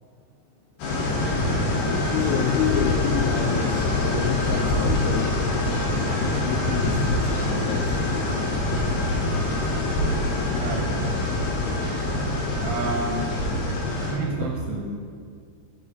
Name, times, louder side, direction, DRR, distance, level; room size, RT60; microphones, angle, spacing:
sound 1, 0.8-14.1, left 2 dB, 65° left, 2.2 m, -24 dB
voice 1, 2.1-5.3 6.2-8.0 14.4-14.5, left 8 dB, 90° left, 2 dB, 2.2 m, -29 dB
voice 2, 10.6-11.0 12.6-13.3 14.1-14.9, right 4 dB, 80° right, 0 dB, 2.6 m, -29 dB
8.0 x 5.9 x 4.0 m, 2.2 s
omnidirectional pair, 5.0 m